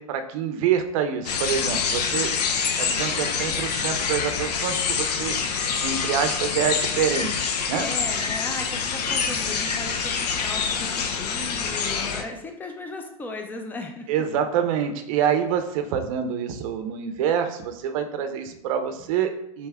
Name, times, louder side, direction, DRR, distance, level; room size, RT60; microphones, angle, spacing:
voice 1, 0.0-2.3 2.8-5.4 5.8-7.9 14.1-19.7, right 8 dB, 60° right, 7 dB, 0.6 m, -26 dB
sound 1, 1.2-12.2, left 6 dB, 90° left, 0.6 m, -26 dB
voice 2, 7.7-14.1, left 2 dB, 10° left, 4 dB, 0.5 m, -36 dB
4.1 x 3.4 x 3.4 m, 0.75 s
supercardioid pair, 140°, 20 cm